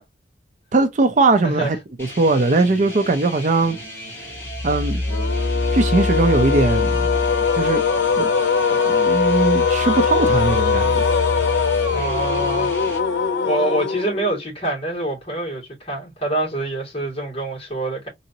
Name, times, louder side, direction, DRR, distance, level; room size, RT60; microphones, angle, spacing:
voice 1, 0.7-3.8 4.6-5.0 5.7-7.1 7.5-7.8 8.2-8.3 8.7-11.0, right 3 dB, 40° right, 0.5 m, -20 dB
voice 2, 1.4-1.8 11.9-12.7 13.4-18.1, right 2 dB, 30° left, 2.2 m, -25 dB
sound 1, 2.0-13.0, equal, 15° left, 1.7 m, -37 dB
sound 2, 4.4-8.2 8.6-13.2, left 2 dB, 60° right, 1.4 m, -27 dB
sound 3, 5.0-14.4, left 5 dB, 90° left, 0.6 m, -21 dB
3.9 x 2.7 x 2.7 m
head